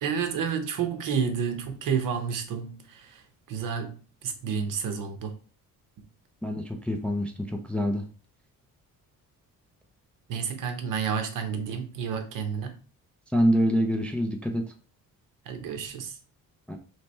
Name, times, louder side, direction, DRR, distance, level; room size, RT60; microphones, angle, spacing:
voice 1, 0.0-3.2 3.5-5.4 10.3-12.8 15.5-16.2, right 6 dB, 70° right, 0.9 m, -30 dB
voice 2, 6.4-8.0 13.3-14.6 16.7-16.8, equal, 5° left, 0.3 m, -26 dB
3.3 x 3.0 x 4.2 m
cardioid pair, 145°, 34 cm